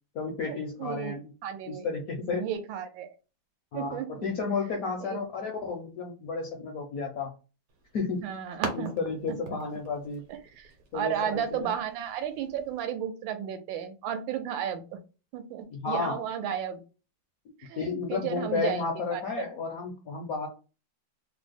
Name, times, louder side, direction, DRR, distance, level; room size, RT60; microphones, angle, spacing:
voice 1, 0.1-1.3 1.7-2.4 3.7-7.4 7.9-8.3 8.7-10.2 10.9-11.7 15.7-16.2 17.8-20.5, left 4 dB, 70° left, 1 dB, 0.8 m, -32 dB
voice 2, 0.8-1.1 1.4-1.9 2.3-3.1 3.7-4.3 5.0-5.2 8.2-8.9 9.5-9.6 10.3-15.0 15.3-16.8 17.6-17.8 18.1-18.8 19.1-19.5, right 9 dB, 80° right, 9 dB, 1.3 m, -33 dB
sound 1, 7.7-12.8, right 4 dB, 60° right, 1.0 m, -42 dB
3.2 x 2.0 x 3.4 m, 0.33 s
omnidirectional pair, 2.1 m